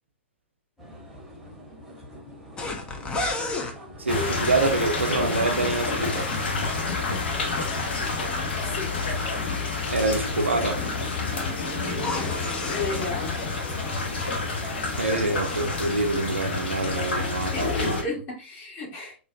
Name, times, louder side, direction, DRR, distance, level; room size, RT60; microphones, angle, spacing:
sound 1, 0.8-15.7, right 1 dB, ahead, 1.0 m, -43 dB
sound 2, 2.6-3.8 5.4-7.8 11.9-13.1 14.6-16.4 16.7-17.2, left 2 dB, 15° left, 0.5 m, -35 dB
voice 1, 4.0-6.3 9.9-10.8 15.0-17.9, right 2 dB, 75° right, 0.6 m, -26 dB
sound 3, 4.1-18.0, left 3 dB, 55° left, 0.8 m, -28 dB
voice 2, 12.7-13.6 17.5-19.2, left 3 dB, 30° left, 1.4 m, -33 dB
3.8 x 2.4 x 2.3 m
figure-of-eight pair, 105°, 6 cm